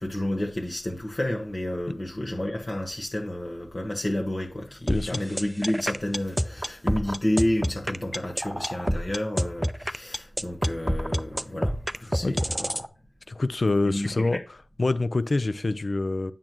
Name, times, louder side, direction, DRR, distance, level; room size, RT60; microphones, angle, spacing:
voice 1, 0.0-12.7 13.8-14.4, left 1 dB, 35° left, 1.4 m, -30 dB
voice 2, 4.9-5.2 12.2-12.4 13.3-14.4 14.8-16.3, left 2 dB, 55° left, 0.6 m, -25 dB
sound 1, 4.9-12.9, equal, 10° right, 0.5 m, -27 dB
8.6 x 7.4 x 3.1 m
cardioid pair, 50°, 0 cm